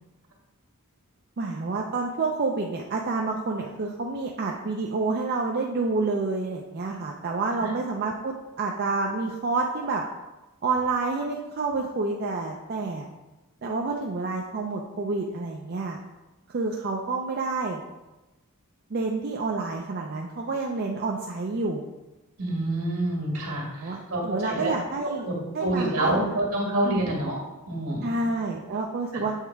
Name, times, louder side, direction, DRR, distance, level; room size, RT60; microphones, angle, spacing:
voice 1, 1.4-10.0 10.6-13.1 13.6-16.0 16.5-17.8 18.9-21.8 23.8-25.3 25.5-26.4 26.8-27.0 28.0-29.3, right 3 dB, 45° right, 0 dB, 0.5 m, -28 dB
voice 2, 22.4-24.9 25.2-25.3 25.6-27.4 27.7-28.1, right 1 dB, 70° right, -1 dB, 1.9 m, -27 dB
7.3 x 3.4 x 4.6 m, 1.1 s
head